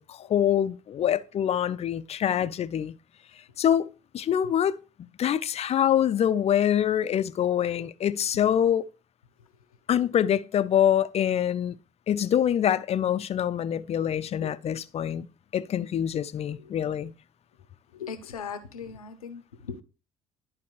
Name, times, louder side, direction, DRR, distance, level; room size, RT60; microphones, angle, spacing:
voice 1, 0.0-2.9 3.6-3.9 4.1-8.9 9.9-11.7 12.1-15.3 15.5-17.1, left 10 dB, 35° left, 0.4 m, -25 dB
voice 2, 17.9-19.8, left 6 dB, 90° left, 0.6 m, -39 dB
10.5 x 4.4 x 3.0 m
hypercardioid pair, 55°, 18 cm